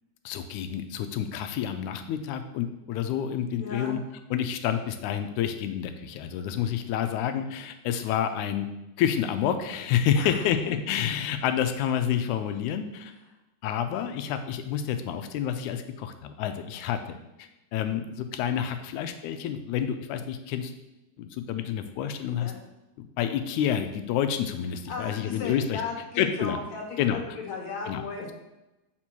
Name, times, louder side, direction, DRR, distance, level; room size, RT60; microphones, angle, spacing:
voice 1, 0.3-4.0 4.3-8.7 9.0-13.1 13.6-17.0 17.4-20.7 21.2-22.5 23.0-25.8 26.2-26.6 27.0-27.2 27.9-28.0, left 9 dB, 90° left, 8 dB, 2.0 m, -29 dB
voice 2, 3.6-4.0 10.2-10.4 22.4-22.6 24.9-28.3, left 4 dB, 70° left, 0 dB, 2.5 m, -36 dB
7.4 x 4.4 x 4.4 m, 0.97 s
omnidirectional pair, 3.4 m